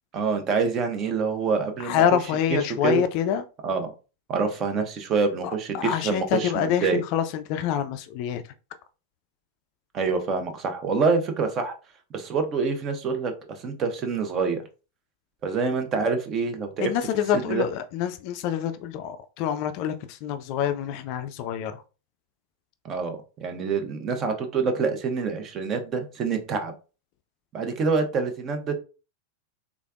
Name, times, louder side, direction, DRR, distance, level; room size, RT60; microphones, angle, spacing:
voice 1, 0.1-2.0 2.5-3.0 3.6-3.9 4.3-7.0 9.9-11.7 12.1-14.6 15.4-16.9 17.5-17.7 22.8-26.7 27.5-28.7, right 5 dB, 30° right, 0.7 m, -26 dB
voice 2, 1.8-3.4 5.7-8.4 16.8-21.8, left 9 dB, 45° left, 0.4 m, -26 dB
3.5 x 3.2 x 2.4 m
figure-of-eight pair, 90°, 0 cm